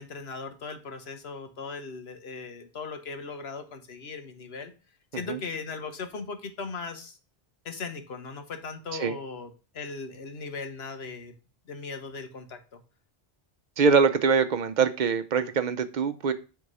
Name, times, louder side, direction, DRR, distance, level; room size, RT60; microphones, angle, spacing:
voice 1, 0.0-4.7 5.1-7.2 7.6-11.3 11.7-12.8, left 4 dB, 80° left, 7 dB, 1.3 m, -38 dB
voice 2, 13.8-16.3, right 5 dB, 50° right, 10 dB, 0.8 m, -23 dB
7.9 x 3.6 x 5.5 m, 0.33 s
omnidirectional pair, 1.0 m